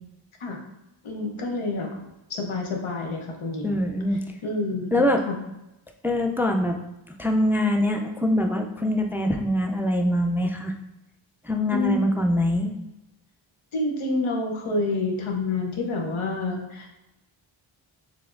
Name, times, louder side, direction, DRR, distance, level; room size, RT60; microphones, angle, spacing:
voice 1, 1.0-2.0 2.3-3.8 4.4-5.3 11.7-12.2 13.7-16.9, left 2 dB, 90° left, 1 dB, 0.8 m, -28 dB
voice 2, 3.6-4.2 4.9-5.2 6.0-6.8 7.2-10.7 11.4-12.7, left 1 dB, 5° right, 4 dB, 0.3 m, -23 dB
4.9 x 3.4 x 2.5 m, 0.92 s
cardioid pair, 55°, 48 cm